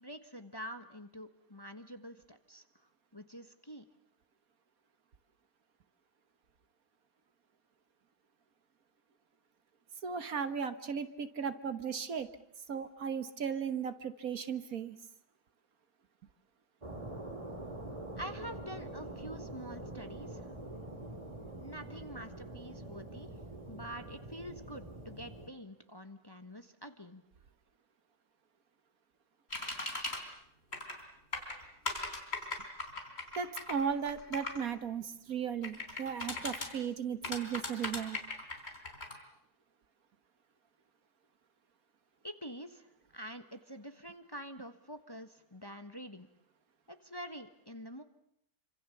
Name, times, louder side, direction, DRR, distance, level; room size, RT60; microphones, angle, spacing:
voice 1, 0.0-2.6 3.1-3.9 18.1-20.5 21.6-23.3 23.7-27.2 42.2-42.9 43.1-46.3 46.9-48.0, equal, 15° left, 8 dB, 1.3 m, -46 dB
voice 2, 10.0-12.3 12.7-15.0 33.4-38.2, right 7 dB, 65° right, 11 dB, 1.7 m, -36 dB
sound 1, 16.8-25.5, right 1 dB, 20° right, 2.5 m, -45 dB
sound 2, 29.5-30.2 30.7-31.0 31.3-34.6 35.6-36.7 37.2-39.1, left 2 dB, 40° left, 4.0 m, -38 dB
27.5 x 26.0 x 7.1 m, 0.74 s
omnidirectional pair, 1.7 m